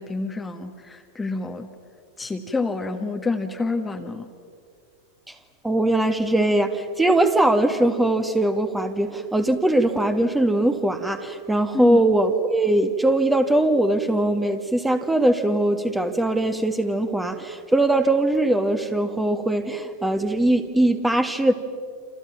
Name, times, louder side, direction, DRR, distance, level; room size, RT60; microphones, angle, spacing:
voice 1, 0.0-1.7 2.2-4.3 11.7-12.0, left 3 dB, 10° left, 5 dB, 1.5 m, -28 dB
voice 2, 5.6-21.5, right 1 dB, 5° right, 8 dB, 1.7 m, -21 dB
29.0 x 28.5 x 5.8 m, 2.2 s
figure-of-eight pair, 90°, 0 cm